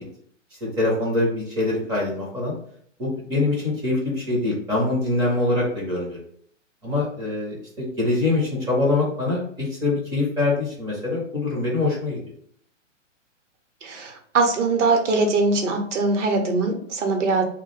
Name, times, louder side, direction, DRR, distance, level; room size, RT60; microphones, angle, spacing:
voice 1, 0.6-2.5 3.0-6.2 6.8-12.2, left 2 dB, 10° right, -3 dB, 0.5 m, -24 dB
voice 2, 13.8-17.4, right 3 dB, 65° right, 4 dB, 0.8 m, -22 dB
2.4 x 2.1 x 3.9 m, 0.63 s
figure-of-eight pair, 120°, 38 cm